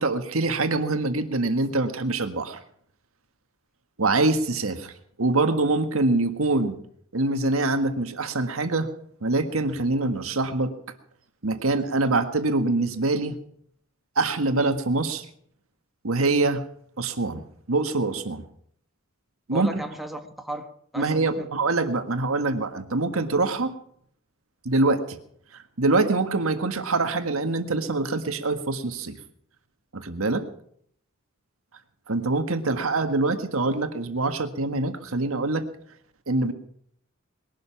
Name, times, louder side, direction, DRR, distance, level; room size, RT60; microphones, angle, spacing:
voice 1, 0.0-2.6 4.0-4.9 5.2-6.8 7.1-8.9 9.2-10.7 11.4-13.4 14.1-15.2 16.0-16.6 17.0-17.4 17.7-18.4 19.5-19.8 21.0-23.7 24.6-25.2 25.5-29.2 29.9-30.5 32.1-35.7 36.3-36.5, right 2 dB, 85° right, 1.7 m, -24 dB
voice 2, 19.5-21.5, right 1 dB, ahead, 1.4 m, -36 dB
21.0 x 12.0 x 5.9 m
head